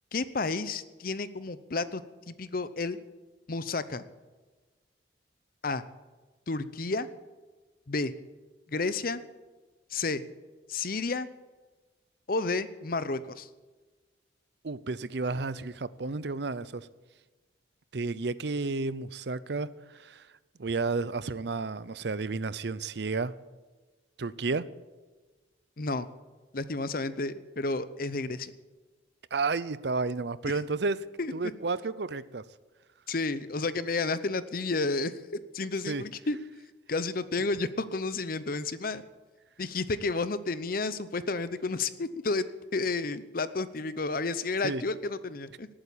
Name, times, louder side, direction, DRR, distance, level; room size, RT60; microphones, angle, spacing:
voice 1, 0.1-3.0 3.5-4.0 5.6-5.8 6.5-7.1 7.9-8.1 8.7-9.2 9.9-10.2 10.7-11.3 12.3-13.5 25.8-26.1 26.5-28.5 31.2-31.3 33.1-36.4 36.9-39.0 39.6-42.5 42.7-45.7, left 3 dB, 50° left, 14 dB, 0.8 m, -31 dB
voice 2, 14.6-16.9 17.9-19.7 20.0-20.2 20.6-23.3 24.2-24.7 29.3-31.0 31.3-32.4 35.9-36.0 44.6-44.8, right 3 dB, 60° right, 17 dB, 0.6 m, -31 dB
18.5 x 8.9 x 8.5 m, 1.3 s
head